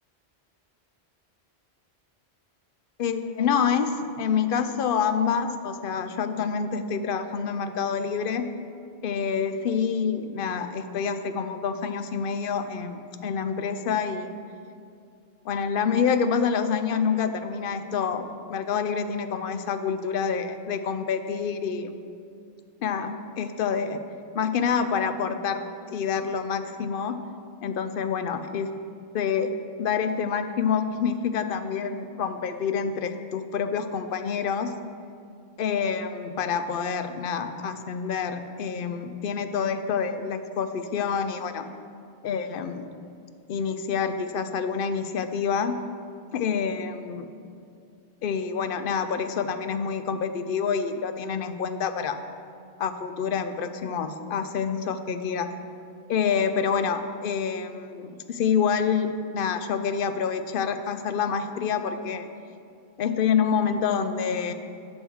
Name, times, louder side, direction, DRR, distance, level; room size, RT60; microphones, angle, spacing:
voice 1, 3.0-8.5 9.0-14.3 15.5-22.0 22.8-24.0 24.3-27.2 27.6-28.8 29.1-34.7 35.6-41.7 42.2-42.9 43.5-45.8 46.3-47.3 48.2-52.2 52.8-55.5 56.1-62.3 63.0-64.5, left 6 dB, 60° left, 9 dB, 0.7 m, -27 dB
7.9 x 6.4 x 6.2 m, 2.4 s
omnidirectional pair, 1.1 m